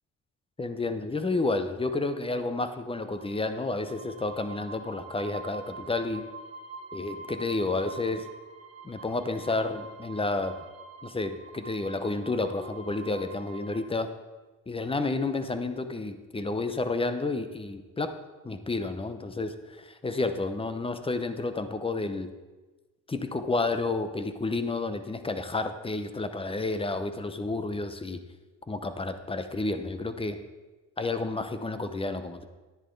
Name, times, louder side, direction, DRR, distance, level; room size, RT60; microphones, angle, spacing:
voice 1, 0.6-6.3 6.9-8.3 8.8-10.6 11.0-14.1 14.7-18.2 18.4-22.3 23.1-28.2 28.7-30.4 31.0-32.4, left 3 dB, 20° left, 10 dB, 0.8 m, -30 dB
sound 1, 3.0-13.8, right 3 dB, 55° right, 1.1 m, -45 dB
11.0 x 10.0 x 3.9 m, 1.2 s
cardioid pair, 90°, 30 cm